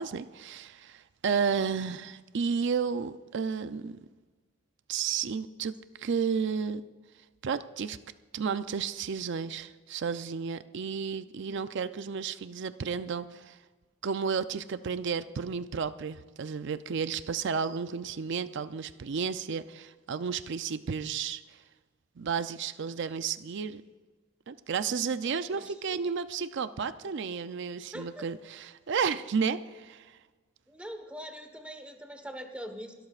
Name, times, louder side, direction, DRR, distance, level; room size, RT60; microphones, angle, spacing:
voice 1, 0.0-4.0 4.9-6.8 7.4-8.0 8.3-13.6 14.0-21.6 22.2-23.8 24.5-28.4 28.9-30.2, right 6 dB, 60° right, 12 dB, 0.5 m, -32 dB
voice 2, 25.6-26.1 27.0-27.2 27.9-28.3 30.7-32.9, equal, 5° right, 6 dB, 1.2 m, -43 dB
28.5 x 12.5 x 2.4 m, 1.3 s
head